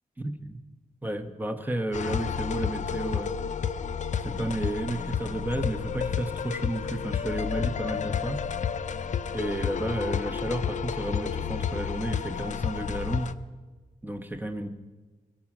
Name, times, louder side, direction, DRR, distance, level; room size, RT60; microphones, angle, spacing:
voice 1, 0.2-0.6 1.0-3.3 4.2-8.4 9.3-13.3 14.0-14.7, right 1 dB, 15° right, 7 dB, 1.0 m, -32 dB
sound 1, 1.9-13.3, left 7 dB, 60° left, 0.5 m, -31 dB
23.0 x 8.7 x 6.0 m, 1.4 s
wide cardioid pair, 170°, 14 cm